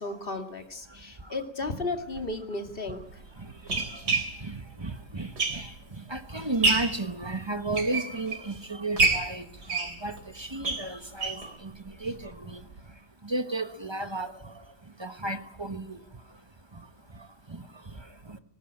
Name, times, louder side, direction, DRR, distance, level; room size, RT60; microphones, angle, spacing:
voice 1, 0.0-3.0, left 2 dB, 30° left, 2.5 m, -34 dB
sound 1, 2.1-2.2 3.0-6.0 6.4-7.0 7.5-8.5 9.0-11.5 11.9-12.0 12.2-12.3 12.7-12.8, right 3 dB, 60° right, 3.9 m, -28 dB
voice 2, 3.7-5.7 6.1-9.4 9.7-11.7 12.0-12.6 13.2-14.3 15.0-16.0, right 2 dB, 20° right, 0.9 m, -33 dB
20.5 x 19.0 x 8.8 m
omnidirectional pair, 2.0 m